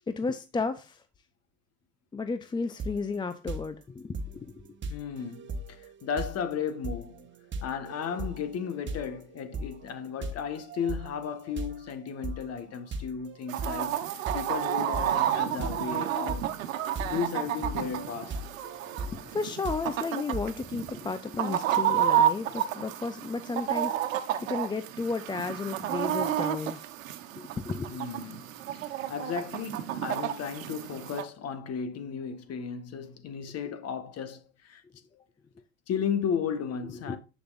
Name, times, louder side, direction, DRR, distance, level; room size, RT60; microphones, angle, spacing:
voice 1, 0.1-1.0 2.1-4.6 9.6-9.7 17.0-17.1 19.0-26.8 27.3-28.0 36.8-37.2, left 4 dB, 10° left, 0.5 m, -33 dB
sound 1, 2.8-3.1 3.5-20.8, right 2 dB, 30° right, 1.6 m, -39 dB
voice 2, 4.9-7.3 7.6-16.5 17.1-18.4 27.9-28.5 28.9-34.8 35.9-37.2, left 7 dB, 40° left, 1.6 m, -34 dB
Chicken rooster, 13.5-31.2, right 11 dB, 85° right, 1.2 m, -31 dB
8.1 x 6.6 x 2.5 m
hypercardioid pair, 100°, 39 cm